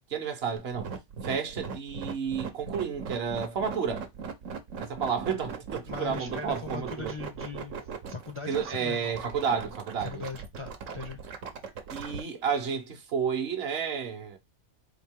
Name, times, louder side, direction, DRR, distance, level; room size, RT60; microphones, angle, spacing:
voice 1, 0.1-0.9 1.2-4.1 4.8-7.1 8.5-10.2 11.9-14.4, right 6 dB, 60° right, 1.0 m, -31 dB
sound 1, 0.6-12.2, right 6 dB, 85° right, 1.2 m, -38 dB
voice 2, 5.9-7.8 8.1-9.1 10.0-11.2, left 4 dB, 45° left, 0.4 m, -39 dB
4.3 x 2.8 x 3.5 m
omnidirectional pair, 1.3 m